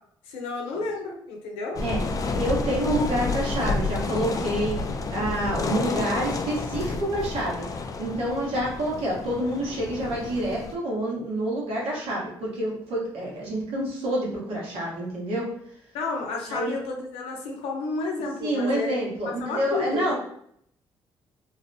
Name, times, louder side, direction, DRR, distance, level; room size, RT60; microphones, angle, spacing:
voice 1, 0.2-1.8 15.9-20.1, left 3 dB, 90° left, 1 dB, 0.6 m, -31 dB
sound 1, 1.8-10.8, left 3 dB, 35° left, 0.3 m, -30 dB
voice 2, 2.3-4.8 5.1-7.5 8.0-15.5 16.5-16.7 18.4-20.1, right 1 dB, 75° right, -4 dB, 1.1 m, -28 dB
2.5 x 2.1 x 2.7 m, 0.67 s
supercardioid pair, 70°, 10 cm